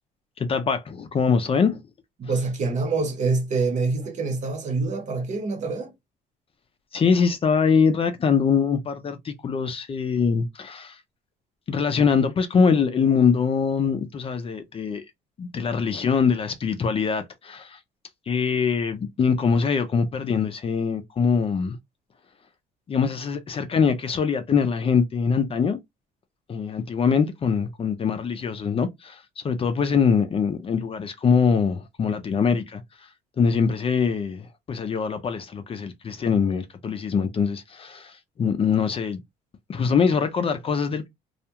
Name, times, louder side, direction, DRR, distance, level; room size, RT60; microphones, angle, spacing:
voice 1, 0.4-1.8 2.2-2.3 6.9-11.0 11.7-15.1 15.4-17.8 18.3-21.8 22.9-25.8 26.5-39.2 39.7-41.1, left 6 dB, 35° left, 0.5 m, -23 dB
voice 2, 2.2-5.9, right 3 dB, 45° right, 0.9 m, -26 dB
2.4 x 2.2 x 2.8 m
cardioid pair, 110°, 17 cm